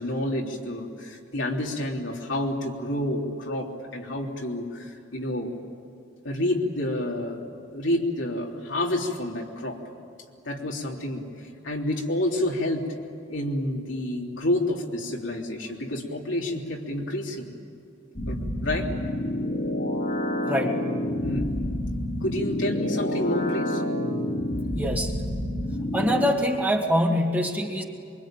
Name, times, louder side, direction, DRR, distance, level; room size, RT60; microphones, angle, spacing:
voice 1, 0.0-5.5 6.2-7.4 7.7-9.8 10.5-12.9 13.3-17.5 18.3-18.9 21.2-21.5 22.2-23.8, left 1 dB, 75° left, -1 dB, 3.5 m, -29 dB
sound 1, 18.1-26.3, left 1 dB, 45° left, 2.9 m, -28 dB
voice 2, 20.4-20.8 24.8-25.1 25.9-27.8, equal, 10° right, 1 dB, 2.1 m, -24 dB
24.0 x 24.0 x 9.1 m, 2.5 s
head